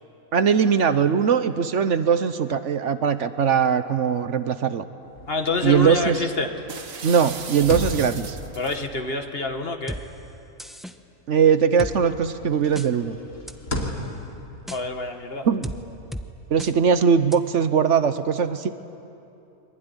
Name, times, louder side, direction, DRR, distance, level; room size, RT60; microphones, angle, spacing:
voice 1, 0.3-4.9 5.6-6.2 7.0-8.4 11.3-13.2 15.4-15.7 16.5-18.7, right 7 dB, 65° right, 11 dB, 1.2 m, -20 dB
sound 1, 5.1-11.5 11.9-17.3, left 1 dB, 70° left, 3.4 m, -37 dB
voice 2, 5.3-6.5 8.6-10.0 14.7-15.5, left 3 dB, 45° left, 5 dB, 2.0 m, -27 dB
sound 2, 6.7-8.8, right 6 dB, 85° right, 1.7 m, -37 dB
sound 3, 9.9-10.0 10.6-10.9 11.8-11.9 12.8-12.9 13.5-13.9 14.7-14.8 15.6-15.8 16.1-16.3 16.6-16.7 17.3-17.4, equal, ahead, 0.9 m, -33 dB
25.0 x 23.0 x 9.9 m, 2.8 s
omnidirectional pair, 1.4 m